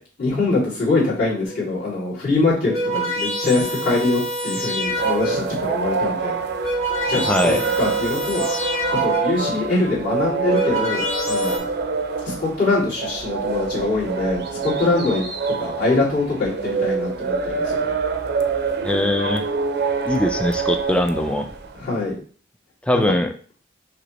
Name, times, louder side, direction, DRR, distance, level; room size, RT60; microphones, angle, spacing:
voice 1, 0.2-6.4 7.1-8.4 9.0-11.6 12.2-15.2 15.6-17.9 21.7-22.2 22.9-23.0, left 3 dB, 55° left, -10 dB, 2.4 m, -23 dB
sound 1, 1.4-1.7 2.4-5.6 6.3-9.5 10.2-11.6, equal, 40° left, 2.4 m, -26 dB
sound 2, 4.9-21.9, right 4 dB, 60° right, 0.5 m, -26 dB
voice 2, 7.3-7.6 18.8-19.4 20.1-21.5 22.9-23.3, left 1 dB, 5° left, 6 dB, 0.3 m, -21 dB
6.0 x 3.0 x 2.9 m, 0.42 s
head